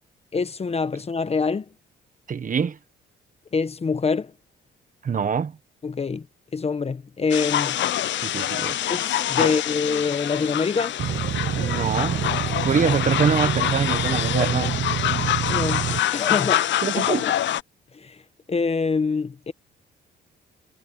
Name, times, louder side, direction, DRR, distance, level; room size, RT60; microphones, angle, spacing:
voice 1, 0.3-1.7 3.5-4.3 5.8-6.3 6.5-7.8 8.9-11.0 15.5-15.8 16.1-16.7 16.9-17.3 17.9-18.2 18.5-19.5, left 4 dB, 30° left, 1.2 m, -25 dB
voice 2, 2.3-2.8 5.0-5.5 8.2-8.8 9.4-9.5 11.5-12.3 12.6-14.7 16.8-17.2, right 6 dB, 40° right, 1.4 m, -24 dB
sound 1, 7.3-17.6, left 12 dB, 65° left, 0.7 m, -25 dB
sound 2, 11.0-16.0, right 10 dB, 60° right, 1.1 m, -27 dB
cardioid pair, 90°, 20 cm